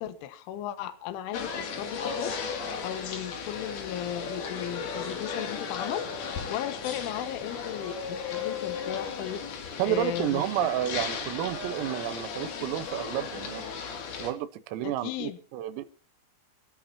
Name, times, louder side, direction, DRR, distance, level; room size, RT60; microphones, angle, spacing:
voice 1, 0.0-10.7 14.8-15.4, left 11 dB, 75° left, 10 dB, 3.8 m, -36 dB
sound 1, 1.3-14.3, left 6 dB, 55° left, 4.0 m, -35 dB
voice 2, 9.8-13.7 14.2-15.8, right 12 dB, 90° right, 11 dB, 3.8 m, -30 dB
26.5 x 14.0 x 2.8 m, 0.37 s
omnidirectional pair, 5.8 m